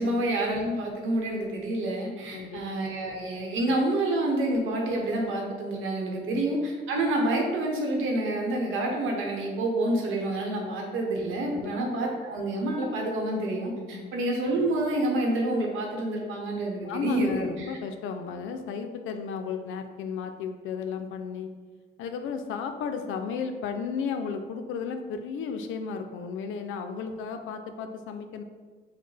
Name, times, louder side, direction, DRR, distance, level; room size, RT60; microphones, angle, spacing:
voice 1, 0.0-17.8, right 1 dB, 90° right, 0 dB, 0.9 m, -28 dB
voice 2, 16.8-21.5 22.0-28.4, left 6 dB, 85° left, 7 dB, 0.5 m, -34 dB
6.2 x 2.1 x 3.2 m, 1.4 s
cardioid pair, 90°, 20 cm